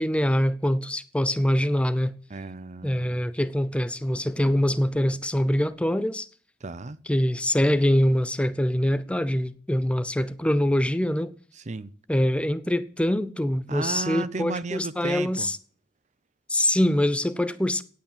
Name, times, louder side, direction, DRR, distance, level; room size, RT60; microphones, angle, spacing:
voice 1, 0.0-2.2 2.8-6.3 7.1-11.3 12.1-15.6 16.5-17.8, left 1 dB, 5° left, 0.7 m, -24 dB
voice 2, 2.3-3.2 6.6-7.0 11.5-11.9 13.7-15.5, right 3 dB, 40° right, 0.7 m, -33 dB
17.5 x 8.6 x 7.5 m
head